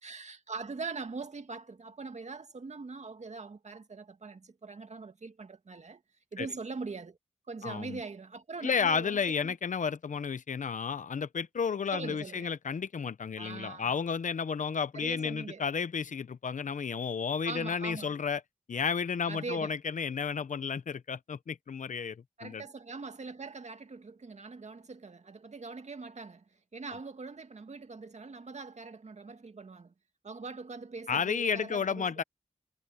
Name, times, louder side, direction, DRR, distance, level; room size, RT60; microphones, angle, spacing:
voice 1, 0.0-6.0 6.3-7.2 7.5-9.6 11.9-12.6 13.4-13.9 14.9-15.6 17.4-18.1 19.3-19.7 22.4-26.4 26.7-29.9 30.2-32.1, right 4 dB, 60° right, 2.1 m, -42 dB
voice 2, 7.6-8.0 8.6-18.4 18.7-22.6 31.1-32.2, left 6 dB, 75° left, 0.9 m, -32 dB
cardioid pair, 45°, 13 cm